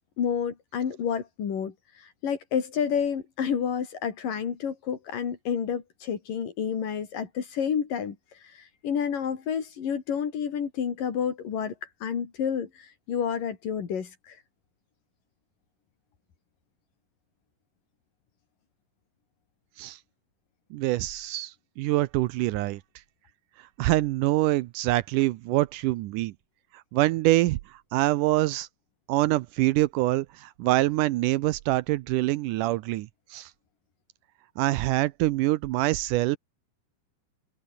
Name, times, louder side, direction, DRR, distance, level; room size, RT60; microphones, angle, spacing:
voice 1, 0.2-14.4, left 7 dB, 85° left, 4.7 m, -30 dB
voice 2, 20.7-22.8 23.8-26.3 26.7-28.7 29.1-33.5 34.6-36.4, right 17 dB, 80° right, 2.2 m, -25 dB
omnidirectional pair, 3.7 m